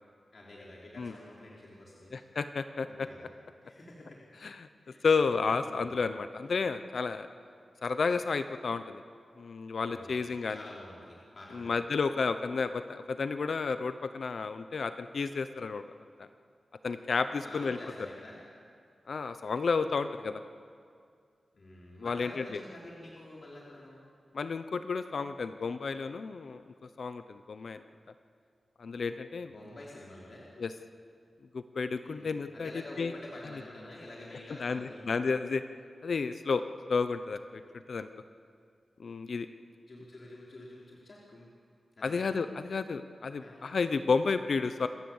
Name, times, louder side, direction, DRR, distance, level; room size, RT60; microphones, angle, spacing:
voice 1, 0.3-2.1 2.8-3.3 3.6-4.3 4.8-5.0 5.7-6.0 9.8-10.1 10.5-11.8 17.4-18.4 21.5-24.0 29.4-30.5 32.0-35.0 39.9-41.5 42.0-42.3 43.4-43.7, left 1 dB, 45° left, -5 dB, 3.2 m, -48 dB
voice 2, 2.1-3.1 4.4-4.7 5.0-7.3 7.8-9.0 9.4-10.6 11.5-15.8 16.2-16.3 16.8-17.8 19.1-20.4 22.0-22.6 24.3-26.6 27.0-27.8 28.8-29.5 30.6-30.7 31.5-32.7 33.0-33.1 34.6-35.6 36.0-36.6 36.9-37.6 37.9-38.1 39.0-39.5 42.0-44.9, left 4 dB, 60° left, 10 dB, 0.7 m, -31 dB
27.0 x 14.0 x 7.2 m, 2.2 s
wide cardioid pair, 140°, 0 cm